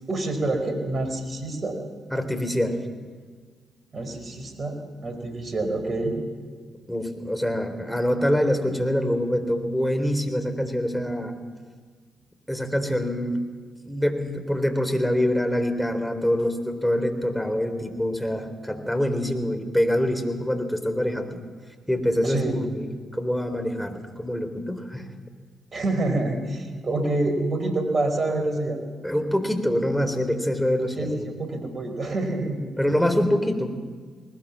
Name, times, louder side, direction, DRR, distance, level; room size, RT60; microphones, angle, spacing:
voice 1, 0.1-1.8 3.9-4.8 5.0-6.2 22.2-22.5 25.7-28.8 31.0-32.7, right 2 dB, 45° right, 6 dB, 5.0 m, -27 dB
voice 2, 2.1-2.8 6.9-11.3 12.5-13.4 13.9-21.4 21.9-25.1 29.0-31.2 32.8-33.8, equal, 5° left, 6 dB, 3.9 m, -25 dB
20.0 x 19.5 x 7.5 m, 1.5 s
hypercardioid pair, 40°, 0 cm